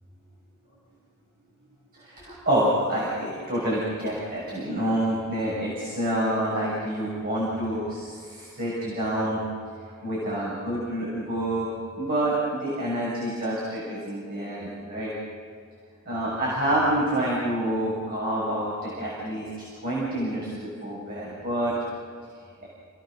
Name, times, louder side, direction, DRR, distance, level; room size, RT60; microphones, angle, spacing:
voice 1, 2.0-9.4 10.0-11.7 11.9-15.1 16.1-19.5 19.8-21.7, right 1 dB, 45° right, -6 dB, 6.9 m, -27 dB
29.5 x 18.5 x 6.6 m, 2.2 s
head